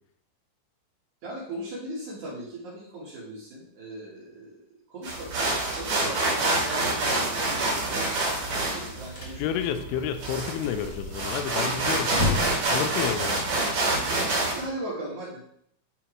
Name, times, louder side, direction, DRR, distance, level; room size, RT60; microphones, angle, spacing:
voice 1, 1.2-4.5 4.9-8.1 8.7-9.8 14.3-15.4, right 1 dB, 80° right, -5 dB, 1.7 m, -38 dB
sound 1, 5.0-14.6, right 2 dB, 50° right, 2.1 m, -27 dB
sound 2, 9.1-9.4 9.7-9.8 10.1-10.2 10.6-13.6, left 2 dB, 55° left, 1.9 m, -32 dB
voice 2, 9.4-12.4 12.7-13.6, left 9 dB, 90° left, 9 dB, 3.1 m, -30 dB
9.9 x 4.4 x 2.9 m, 0.68 s
omnidirectional pair, 5.5 m